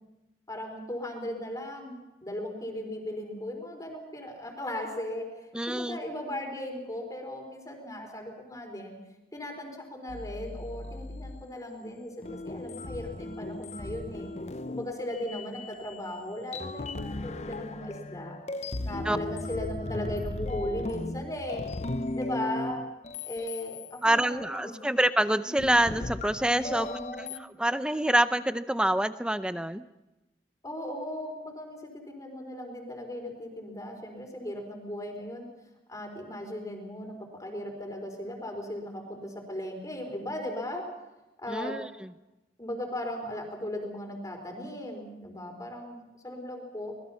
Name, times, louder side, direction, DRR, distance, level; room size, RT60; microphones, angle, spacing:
voice 1, 0.5-8.9 9.3-14.3 14.7-18.4 18.8-21.6 22.1-22.8 23.2-25.0 26.6-27.4 30.6-35.5 35.9-37.1 37.4-40.8 41.4-41.7 42.6-46.9, left 1 dB, 20° left, 2 dB, 4.3 m, -37 dB
voice 2, 5.5-6.0 19.0-19.2 24.0-26.9 27.2-29.8 41.5-42.1, right 1 dB, 5° right, 12 dB, 0.7 m, -26 dB
sound 1, 10.1-11.4 12.2-16.2 16.5-24.0 24.6-24.8 25.5-27.4, left 2 dB, 40° left, 0.7 m, -37 dB
25.5 x 20.5 x 5.7 m, 0.99 s
head